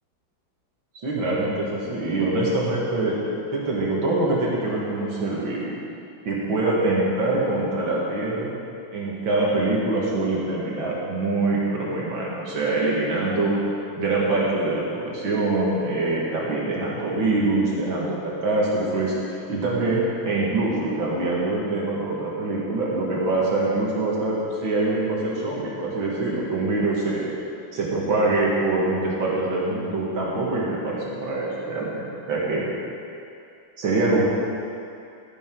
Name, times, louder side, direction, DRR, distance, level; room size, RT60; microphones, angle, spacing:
voice 1, 1.0-3.2 3.5-5.7 6.3-8.5 8.9-13.6 14.0-27.3 27.7-32.6 33.8-34.2, right 2 dB, 75° right, -5 dB, 2.8 m, -24 dB
13.5 x 10.5 x 3.9 m, 2.5 s
omnidirectional pair, 2.2 m